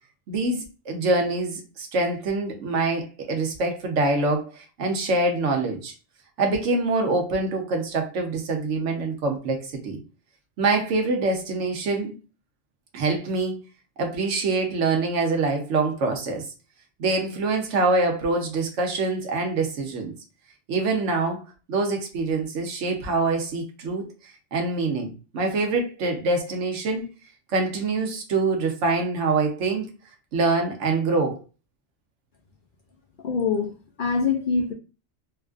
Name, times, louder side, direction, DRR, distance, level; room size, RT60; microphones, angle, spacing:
voice 1, 0.3-5.9 6.4-10.0 10.6-12.1 12.9-13.6 14.0-16.5 17.0-20.1 20.7-21.4 21.7-24.1 24.5-27.1 27.5-29.9 30.3-31.4, right 3 dB, 80° right, 1.1 m, -25 dB
voice 2, 33.2-34.7, left 5 dB, 60° left, 0.6 m, -24 dB
3.6 x 2.4 x 2.4 m
omnidirectional pair, 1.2 m